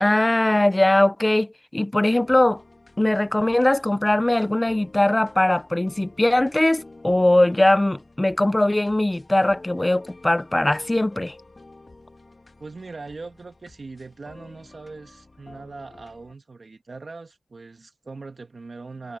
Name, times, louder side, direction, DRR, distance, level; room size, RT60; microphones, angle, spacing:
voice 1, 0.0-2.6 3.0-11.3, left 1 dB, 20° left, 0.8 m, -20 dB
sound 1, 2.1-16.3, left 2 dB, 40° left, 2.2 m, -49 dB
voice 2, 12.6-19.2, right 3 dB, 55° right, 1.7 m, -40 dB
wide cardioid pair, 65°, 0 cm